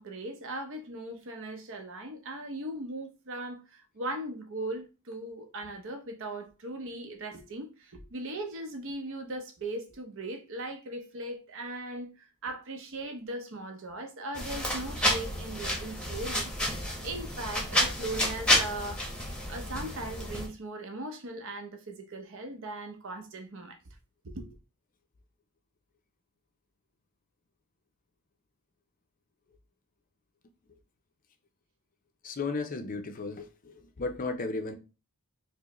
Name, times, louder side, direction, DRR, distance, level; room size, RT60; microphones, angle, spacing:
voice 1, 0.0-16.5 17.0-19.0 19.5-23.8 24.2-24.6, right 2 dB, 60° right, 0.7 m, -38 dB
sound 1, 14.3-20.5, equal, 5° left, 0.8 m, -30 dB
voice 2, 32.2-34.7, left 3 dB, 40° left, 0.5 m, -34 dB
4.6 x 2.1 x 3.0 m
head